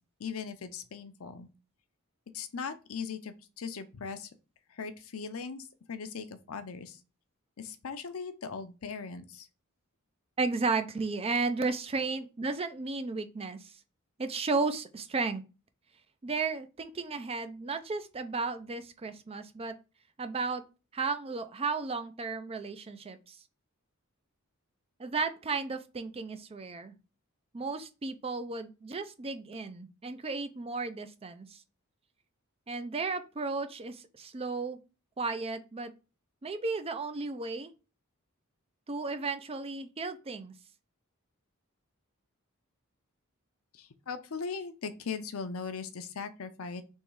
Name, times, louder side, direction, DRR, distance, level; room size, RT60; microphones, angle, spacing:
voice 1, 0.2-1.5 2.3-4.3 4.7-7.0 7.6-9.5 43.7-46.8, left 5 dB, 75° left, 10 dB, 0.6 m, -39 dB
voice 2, 10.4-13.7 14.2-15.4 16.2-19.7 20.2-20.6 20.9-23.4 25.0-26.9 27.5-31.6 32.7-34.8 35.2-35.9 36.4-37.7 38.9-40.5, right 4 dB, 30° right, 9 dB, 0.5 m, -34 dB
3.6 x 3.1 x 4.6 m, 0.32 s
head